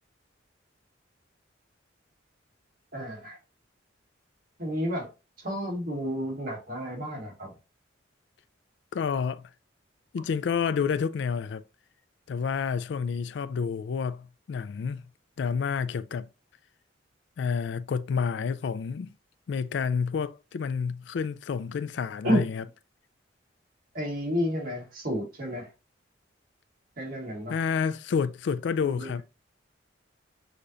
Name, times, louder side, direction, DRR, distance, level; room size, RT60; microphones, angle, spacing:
voice 1, 2.9-3.4 4.6-5.1 5.4-7.5 22.2-22.4 23.9-25.7 27.0-27.6 28.8-29.2, equal, 50° right, 1.7 m, -31 dB
voice 2, 8.9-9.4 10.1-11.6 12.3-15.0 15.4-16.3 17.4-19.1 19.5-22.6 27.5-29.2, left 6 dB, 65° left, 0.3 m, -29 dB
6.5 x 2.8 x 2.6 m
head